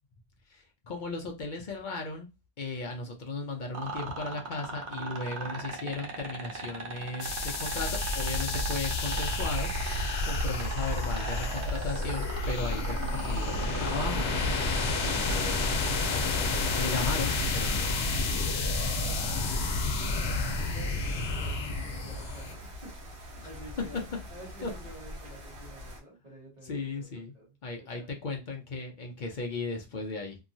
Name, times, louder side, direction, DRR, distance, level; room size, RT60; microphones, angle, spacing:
voice 1, 0.5-2.3 2.6-14.4 15.0-15.7 16.0-18.1 20.6-20.7 24.6-24.7 26.6-27.3 27.6-30.4, left 3 dB, 55° left, 0.7 m, -36 dB
sound 1, 3.7-15.9 17.6-17.7, right 4 dB, 80° right, 1.0 m, -38 dB
sound 2, 7.2-22.5, left 3 dB, 90° left, 0.9 m, -30 dB
sound 3, 9.1-26.0, left 1 dB, 60° right, 1.3 m, -44 dB
voice 2, 18.7-19.7 20.1-20.3 20.7-24.0 24.3-28.1, right 1 dB, 40° right, 1.2 m, -50 dB
2.9 x 2.3 x 2.6 m
omnidirectional pair, 1.1 m